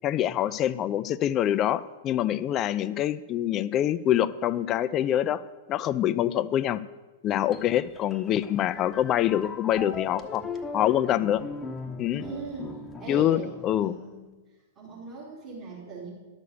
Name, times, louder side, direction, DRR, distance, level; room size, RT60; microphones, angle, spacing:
voice 1, 0.0-5.4 5.7-6.8 7.2-10.4 10.7-11.4 12.0-12.2 13.1-14.0, left 11 dB, 35° left, 14 dB, 0.4 m, -25 dB
sound 1, 7.5-14.2, left 3 dB, 15° left, 1.0 m, -40 dB
voice 2, 12.1-13.5 13.8-14.2 14.8-16.1, right 3 dB, 40° right, -8 dB, 3.5 m, -39 dB
11.5 x 6.6 x 6.8 m, 1.2 s
hypercardioid pair, 110°, 0 cm